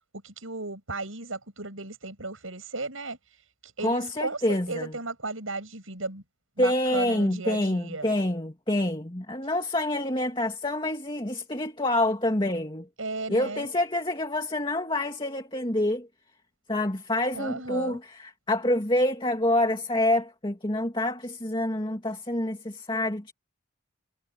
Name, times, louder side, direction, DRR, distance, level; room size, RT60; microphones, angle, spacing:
voice 1, 0.2-6.2 6.6-8.1 9.4-9.5 13.0-13.7 17.3-18.0, right 3 dB, 85° right, 7.1 m, -35 dB
voice 2, 3.8-4.9 6.6-12.9 13.3-16.1 16.7-23.3, left 1 dB, 25° left, 2.3 m, -27 dB
head